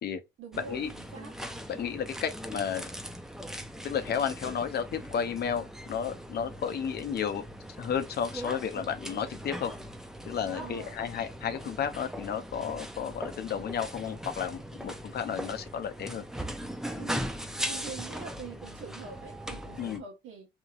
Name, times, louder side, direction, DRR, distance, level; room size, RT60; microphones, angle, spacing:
voice 1, 0.4-1.3 10.5-11.0 17.0-17.2 17.6-20.5, right 5 dB, 80° right, 1.2 m, -44 dB
sound 1, 0.5-20.0, equal, ahead, 0.4 m, -40 dB
voice 2, 1.7-2.9 3.8-7.4 7.8-9.7 10.3-16.2 19.8-20.0, left 7 dB, 55° left, 0.5 m, -32 dB
2.8 x 2.7 x 2.4 m
cardioid pair, 90°, 20 cm